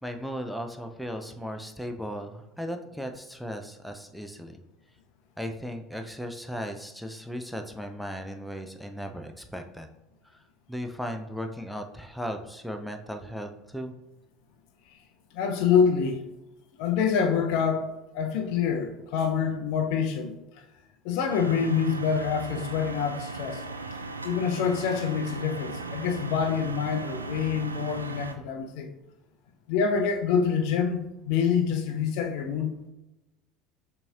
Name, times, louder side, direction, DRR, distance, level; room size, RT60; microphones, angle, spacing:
voice 1, 0.0-4.6 5.4-9.9 10.2-13.9, equal, ahead, 0.4 m, -36 dB
voice 2, 15.3-16.2 16.8-20.4 21.0-23.6 24.2-28.9 29.7-32.7, left 6 dB, 55° left, 0.5 m, -26 dB
sound 1, 21.3-28.3, right 3 dB, 85° right, 0.3 m, -37 dB
6.7 x 2.9 x 2.4 m
figure-of-eight pair, 70°, 0 cm